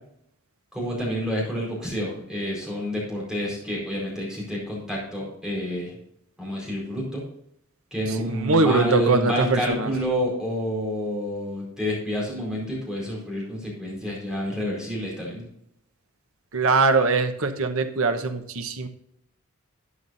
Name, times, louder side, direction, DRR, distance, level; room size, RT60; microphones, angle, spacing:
voice 1, 0.7-5.9 6.4-7.2 7.9-15.5, equal, 5° right, -5 dB, 4.6 m, -29 dB
voice 2, 8.3-9.9 16.5-18.9, right 3 dB, 65° right, 7 dB, 1.1 m, -22 dB
12.5 x 10.5 x 2.7 m, 0.74 s
head